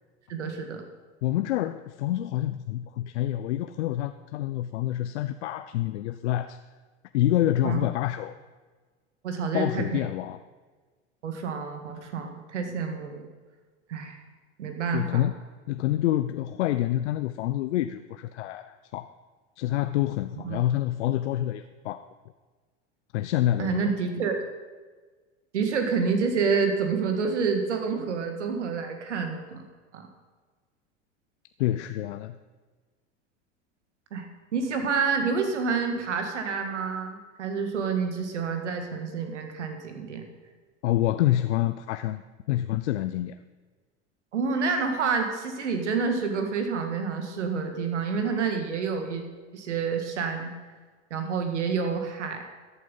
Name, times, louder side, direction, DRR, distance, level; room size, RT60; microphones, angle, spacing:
voice 1, 0.3-0.8 7.6-7.8 9.2-10.1 11.2-13.3 13.9-14.2 14.6-15.2 20.5-20.6 23.6-24.3 25.5-29.6 29.9-30.1 34.1-34.3 34.5-40.2 44.3-49.2 49.5-50.5 51.1-52.4, right 5 dB, 90° right, 5 dB, 2.1 m, -28 dB
voice 2, 1.2-6.6 7.1-8.3 9.5-10.4 14.9-15.3 15.7-19.1 19.6-22.1 23.1-23.9 31.6-32.4 40.8-42.2 42.5-43.3, left 13 dB, 80° left, 11 dB, 0.6 m, -27 dB
14.0 x 8.4 x 5.5 m, 1.4 s
hypercardioid pair, 100°, 34 cm